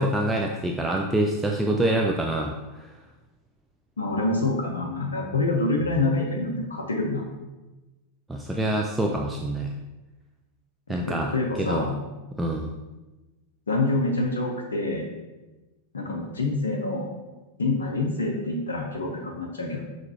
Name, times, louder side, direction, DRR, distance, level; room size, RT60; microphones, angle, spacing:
voice 1, 0.0-2.9 8.3-9.7 10.9-11.3 11.6-11.9 12.4-12.7, right 1 dB, 5° right, 0 dB, 0.3 m, -26 dB
voice 2, 4.0-7.2 11.1-11.9 13.7-15.1 15.9-17.1 17.6-19.8, left 2 dB, 70° left, 0 dB, 0.5 m, -26 dB
5.8 x 3.0 x 2.7 m, 1.1 s
figure-of-eight pair, 90°, 0 cm